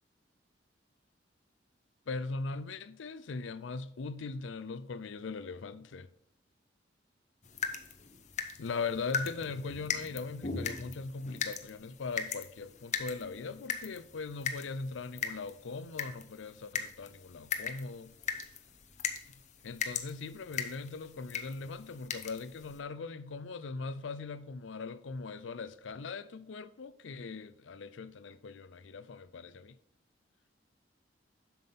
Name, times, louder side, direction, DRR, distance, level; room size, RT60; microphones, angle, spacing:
voice 1, 2.1-6.1 8.6-18.1 19.6-29.8, left 4 dB, 80° left, 0.5 m, -40 dB
sound 1, 7.4-22.8, left 6 dB, 40° left, 0.8 m, -39 dB
7.6 x 5.9 x 5.4 m
head